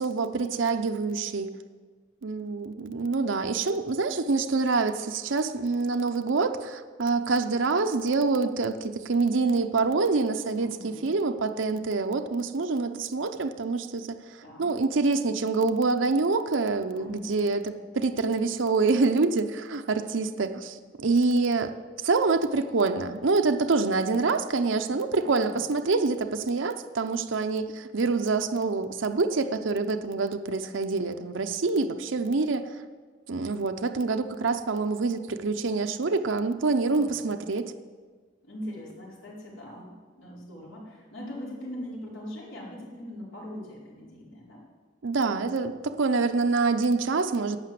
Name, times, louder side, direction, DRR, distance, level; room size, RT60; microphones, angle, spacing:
voice 1, 0.0-1.5 2.2-21.7 22.0-32.8 33.3-37.7 45.0-47.6, right 3 dB, 70° right, 7 dB, 0.7 m, -26 dB
voice 2, 10.6-11.1 14.4-14.7 16.9-17.4 25.1-25.7 36.8-37.4 38.4-44.6, equal, 90° left, -5 dB, 4.5 m, -41 dB
11.5 x 8.8 x 7.6 m, 1.5 s
head